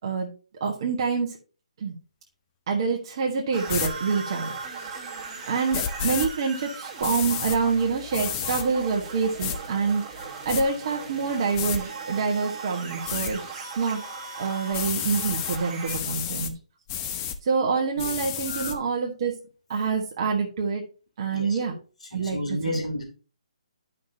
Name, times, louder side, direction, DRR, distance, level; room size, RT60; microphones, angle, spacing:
voice 1, 0.6-1.3 1.8-2.0 2.7-4.5 4.8-5.0 5.5-10.0 10.4-14.0 14.4-16.5 17.4-19.3 19.7-20.8 21.2-21.7 22.1-22.4 22.7-22.8, right 5 dB, 45° right, 1.4 m, -26 dB
sound 1, 3.5-16.0, right 4 dB, 20° right, 1.8 m, -38 dB
sound 2, 3.7-3.9 5.7-6.3 7.0-7.6 8.1-8.7 9.4-9.6 10.2-10.6 11.5-11.8 13.1-13.3 14.7-15.6 15.9-16.5 16.9-17.4 18.0-18.8, left 9 dB, 25° left, 0.7 m, -30 dB
voice 2, 18.5-18.8 21.3-21.6 22.0-23.0, equal, 75° left, 3.0 m, -32 dB
10.5 x 5.5 x 2.8 m
figure-of-eight pair, 140°, 4 cm